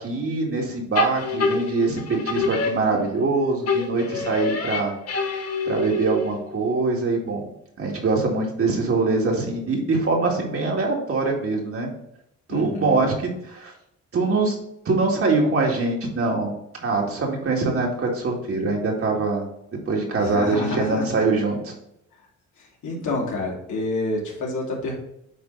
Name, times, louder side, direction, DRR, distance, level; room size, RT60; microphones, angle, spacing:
voice 1, 0.0-4.9 5.7-7.4 7.8-11.9 12.5-13.7 14.1-14.6 14.9-16.5 16.8-19.5 19.9-21.7, right 3 dB, 50° right, 0 dB, 2.1 m, -23 dB
sound 1, 0.9-3.3 3.7-6.5, left 2 dB, 55° left, 1.3 m, -26 dB
voice 2, 12.5-13.1 20.2-21.2 22.6-24.9, left 2 dB, 75° left, -3 dB, 2.8 m, -28 dB
9.4 x 3.3 x 4.0 m, 0.79 s
cardioid pair, 90°, 30 cm